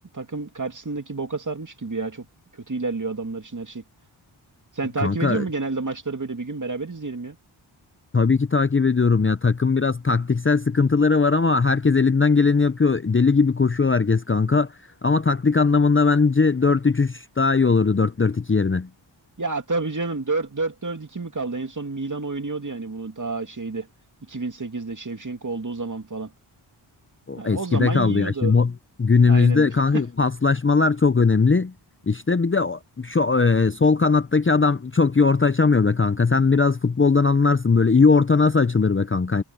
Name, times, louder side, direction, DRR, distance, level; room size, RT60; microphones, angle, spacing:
voice 1, 0.1-2.3 2.5-3.8 4.7-7.4 19.4-23.9 24.2-26.3 27.4-28.6 29.3-30.0, right 3 dB, 35° right, 2.6 m, -29 dB
voice 2, 5.0-5.4 8.1-14.7 15.0-18.9 27.3-28.7 29.0-31.7 32.1-39.4, left 4 dB, 25° left, 0.8 m, -19 dB
cardioid pair, 40°, 50 cm